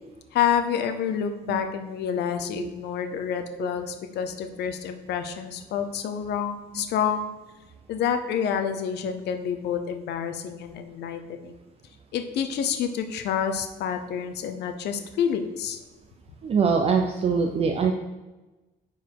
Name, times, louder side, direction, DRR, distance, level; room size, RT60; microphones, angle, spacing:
voice 1, 0.3-7.3 7.9-11.6 12.1-15.8, left 8 dB, 90° left, 7 dB, 0.8 m, -28 dB
voice 2, 16.4-17.9, right 5 dB, 35° right, 3 dB, 0.5 m, -23 dB
9.8 x 4.1 x 4.6 m, 1.1 s
cardioid pair, 175°, 17 cm